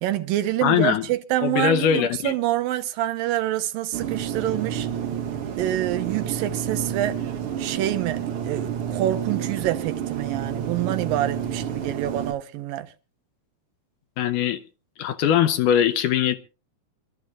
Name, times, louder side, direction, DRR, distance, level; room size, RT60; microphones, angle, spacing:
voice 1, 0.0-4.9 5.6-7.2 7.6-12.9, right 13 dB, 80° right, 2.7 m, -26 dB
voice 2, 0.6-1.1 1.4-2.3 14.2-14.6 15.0-16.4, left 9 dB, 75° left, 2.2 m, -21 dB
sound 1, 3.9-12.3, right 9 dB, 65° right, 1.4 m, -29 dB
25.5 x 13.0 x 2.4 m
omnidirectional pair, 4.0 m